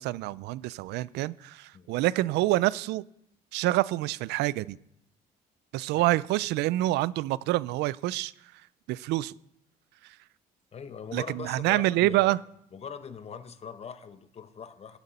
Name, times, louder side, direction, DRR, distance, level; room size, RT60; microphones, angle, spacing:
voice 1, 0.0-3.0 3.5-4.8 5.7-8.3 8.9-9.3 10.0-10.2 11.1-12.4, right 17 dB, 85° right, 20 dB, 0.4 m, -27 dB
voice 2, 10.7-12.3 12.7-15.0, left 6 dB, 40° left, 11 dB, 1.0 m, -41 dB
12.0 x 11.5 x 4.2 m, 0.73 s
cardioid pair, 110°, 17 cm